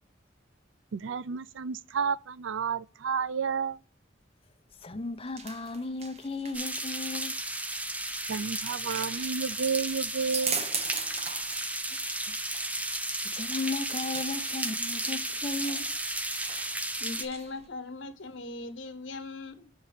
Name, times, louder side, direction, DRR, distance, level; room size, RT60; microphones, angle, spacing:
voice 1, 0.9-3.8 8.3-10.6, right 6 dB, 85° right, 0.4 m, -31 dB
sound 1, 4.7-17.7, right 5 dB, 35° right, 0.9 m, -41 dB
voice 2, 4.8-7.4 11.7-12.3 13.3-15.9, left 3 dB, 30° left, 0.7 m, -35 dB
sound 2, 6.5-17.3, right 1 dB, 10° right, 0.5 m, -34 dB
voice 3, 17.0-19.7, left 3 dB, 80° left, 1.1 m, -39 dB
7.0 x 4.4 x 5.0 m
head